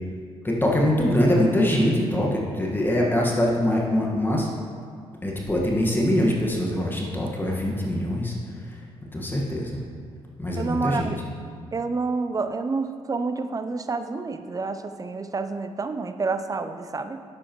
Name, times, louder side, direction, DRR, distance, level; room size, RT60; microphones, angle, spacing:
voice 1, 0.4-4.5 5.2-8.8 9.1-9.8 10.4-11.1, left 1 dB, 15° left, -2 dB, 1.5 m, -23 dB
voice 2, 10.6-11.2 11.7-17.2, right 4 dB, 30° right, 9 dB, 0.6 m, -28 dB
9.7 x 7.7 x 3.0 m, 2.2 s
supercardioid pair, 60°, 12 cm